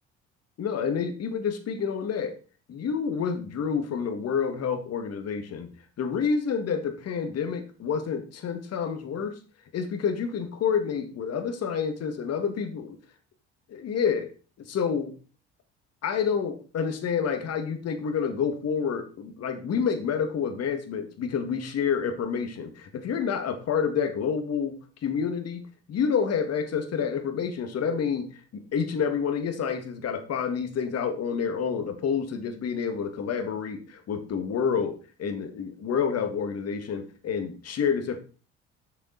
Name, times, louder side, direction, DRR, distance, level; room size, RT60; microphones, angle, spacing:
voice 1, 0.6-2.3 2.7-5.7 6.0-9.3 9.7-13.0 13.7-14.3 14.6-15.1 16.0-24.7 25.0-25.6 25.9-28.3 28.5-38.2, left 6 dB, 55° left, 8 dB, 1.9 m, -28 dB
7.3 x 6.6 x 4.0 m, 0.36 s
supercardioid pair, 70°, 30 cm